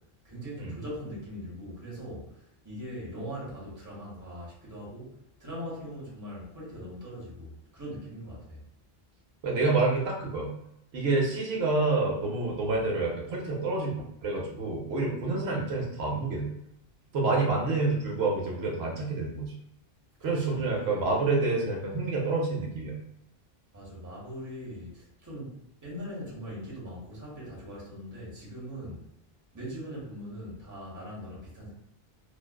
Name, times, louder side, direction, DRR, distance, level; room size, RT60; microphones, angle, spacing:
voice 1, 0.2-5.1 5.4-8.6 20.2-21.0 23.7-29.0 29.5-31.7, equal, 20° right, -6 dB, 0.9 m, -41 dB
voice 2, 9.4-10.5 10.9-13.9 14.2-16.5 17.1-19.5 20.2-22.9, right 3 dB, 80° right, -1 dB, 0.9 m, -28 dB
2.4 x 2.2 x 2.2 m, 0.77 s
omnidirectional pair, 1.0 m